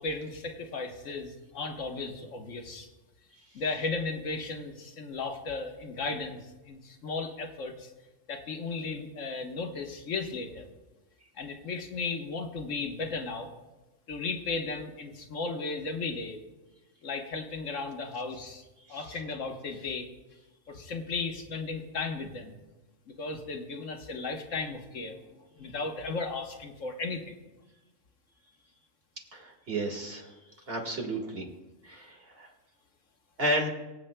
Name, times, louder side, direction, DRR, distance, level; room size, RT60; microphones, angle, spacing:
voice 1, 0.0-2.9 3.5-7.9 8.3-10.7 11.4-13.5 14.1-16.4 17.0-18.6 18.9-20.1 20.7-22.6 23.1-27.4, left 3 dB, 75° left, 4 dB, 1.5 m, -35 dB
voice 2, 29.3-30.3 30.7-31.5 31.8-32.5 33.4-33.7, right 1 dB, 50° right, 2 dB, 2.0 m, -32 dB
23.5 x 8.2 x 2.2 m, 1.1 s
omnidirectional pair, 1.3 m